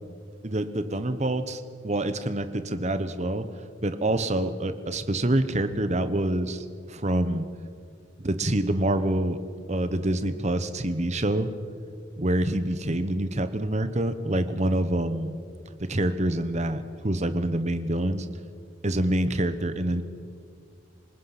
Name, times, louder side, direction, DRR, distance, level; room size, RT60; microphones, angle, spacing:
voice 1, 0.4-3.5 3.8-7.4 8.2-9.4 9.7-11.5 12.2-15.4 15.8-18.3 18.8-20.0, right 1 dB, 35° right, 11 dB, 1.2 m, -26 dB
27.0 x 19.5 x 6.1 m, 2.2 s
head